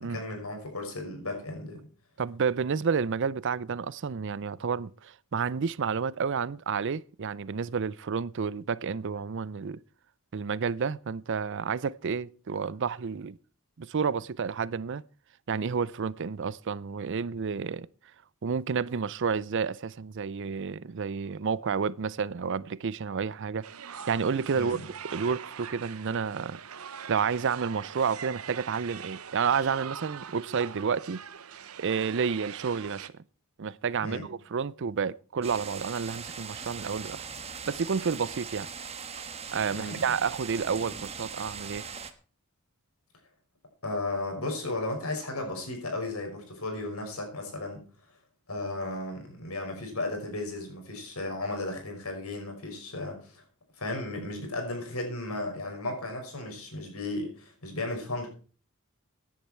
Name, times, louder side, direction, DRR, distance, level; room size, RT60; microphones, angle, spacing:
voice 1, 0.1-1.8 24.5-24.8 34.0-34.2 39.7-40.1 43.8-47.8 48.5-53.4 53.8-58.3, left 2 dB, 80° left, 5.8 m, -35 dB
voice 2, 2.2-9.8 10.3-13.4 13.8-15.0 15.5-17.9 18.4-23.6 24.1-24.8 25.1-26.6 27.1-31.2 31.8-33.1 33.6-37.3 37.7-38.7 39.5-41.8, right 6 dB, 55° right, 0.5 m, -30 dB
sound 1, 23.6-33.1, right 8 dB, 75° right, 0.8 m, -42 dB
sound 2, 35.4-42.1, right 6 dB, 30° right, 1.3 m, -40 dB
16.0 x 10.5 x 4.5 m
head